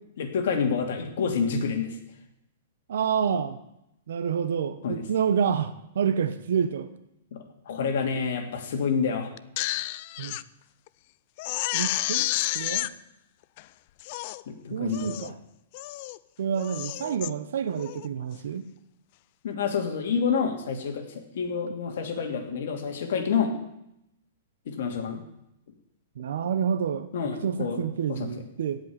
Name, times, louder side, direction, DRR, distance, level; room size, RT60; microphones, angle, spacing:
voice 1, 0.2-2.0 4.8-5.0 7.3-9.3 14.5-15.3 19.4-21.0 21.3-23.5 24.7-25.2 27.1-27.8 28.1-28.3, left 6 dB, 60° left, 3 dB, 2.6 m, -28 dB
voice 2, 2.9-3.6 4.1-6.9 10.2-10.4 11.7-12.3 12.5-12.9 14.7-15.3 16.4-18.6 26.2-27.1 27.4-28.8, right 7 dB, 70° right, 10 dB, 0.9 m, -28 dB
Crying sobbing, 9.4-10.4 10.9-11.0 11.4-12.9 13.6-13.7 14.0-14.4 14.9-15.3 15.7-16.2 16.6-17.3 17.8-18.1, left 17 dB, 40° left, 0.4 m, -30 dB
16.0 x 5.4 x 9.5 m, 0.83 s
hypercardioid pair, 160°, 0 cm